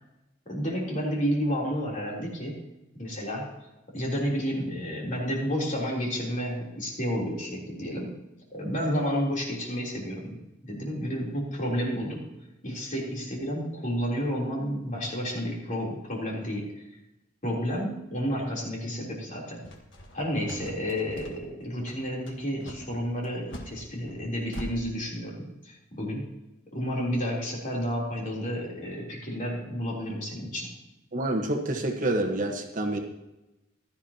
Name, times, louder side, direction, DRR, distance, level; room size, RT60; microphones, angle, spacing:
voice 1, 0.5-2.6 3.0-3.6 3.9-8.1 8.5-10.4 10.6-12.3 12.6-16.9 17.4-19.6 20.1-26.3 26.7-30.7, equal, 40° left, -2 dB, 3.5 m, -31 dB
sound 1, 19.6-24.7, equal, 70° left, 1.7 m, -42 dB
voice 2, 31.1-33.0, right 1 dB, 40° right, 3 dB, 1.3 m, -27 dB
16.0 x 12.5 x 2.9 m, 0.96 s
head